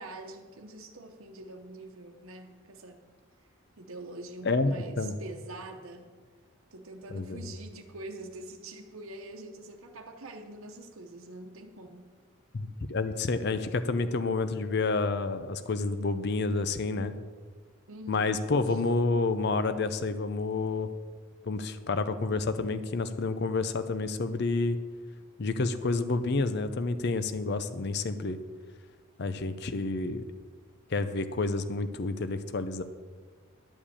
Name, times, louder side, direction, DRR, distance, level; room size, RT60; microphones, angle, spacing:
voice 1, 0.0-3.0 3.8-6.1 6.7-12.1 17.9-18.3 18.7-18.8, right 2 dB, 80° right, 2 dB, 0.9 m, -44 dB
voice 2, 4.4-5.1 7.1-7.5 12.5-17.1 18.1-20.9 21.5-24.8 25.4-28.4 29.2-30.2 30.9-32.8, left 3 dB, 50° left, 11 dB, 0.6 m, -29 dB
11.5 x 5.2 x 8.5 m, 1.5 s
head